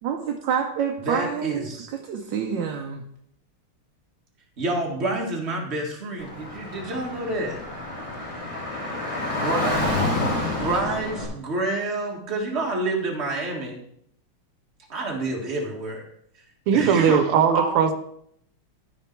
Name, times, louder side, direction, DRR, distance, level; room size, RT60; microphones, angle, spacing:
voice 1, 0.0-1.7 1.9-3.0, right 7 dB, 65° right, 2 dB, 1.4 m, -27 dB
voice 2, 1.0-1.9 4.6-7.6 9.3-9.8 10.6-13.8 14.9-16.0 16.7-17.2 17.5-17.7, right 2 dB, 30° right, -1 dB, 1.9 m, -28 dB
Car / Traffic noise roadway noise, 6.2-11.3, left 2 dB, 15° left, 2.6 m, -28 dB
voice 3, 16.7-17.9, right 7 dB, 90° right, 9 dB, 1.7 m, -19 dB
12.5 x 5.1 x 4.5 m, 0.71 s
omnidirectional pair, 2.3 m